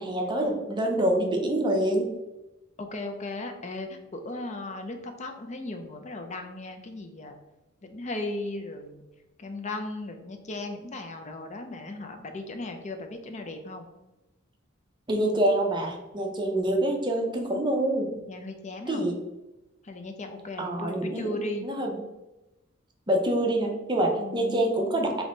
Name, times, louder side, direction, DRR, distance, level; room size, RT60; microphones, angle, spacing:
voice 1, 0.0-2.1 15.1-18.1 18.9-19.2 20.6-21.9 23.1-25.2, right 1 dB, 20° right, 2 dB, 0.5 m, -26 dB
voice 2, 2.8-7.4 7.9-9.0 9.4-13.9 18.3-19.0 19.8-21.7 24.1-24.7, left 2 dB, 35° left, 6 dB, 0.5 m, -36 dB
3.6 x 3.0 x 3.8 m, 1.0 s
head